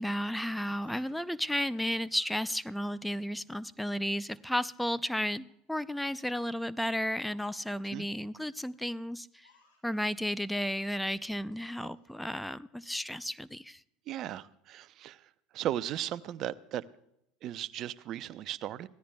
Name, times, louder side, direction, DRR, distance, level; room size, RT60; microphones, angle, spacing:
voice 1, 0.0-9.5 9.8-13.8, equal, 5° left, 14 dB, 0.5 m, -33 dB
Laughter, 0.8-3.9 4.3-4.6 4.9-5.5 6.0-6.3 7.0-8.0 9.4-10.8 11.1-11.2 11.8-12.3, left 3 dB, 90° left, 6.5 m, -66 dB
voice 2, 14.1-16.8 17.4-18.9, right 12 dB, 50° right, 16 dB, 0.6 m, -36 dB
24.5 x 17.0 x 2.3 m, 0.79 s
hypercardioid pair, 75°, 0 cm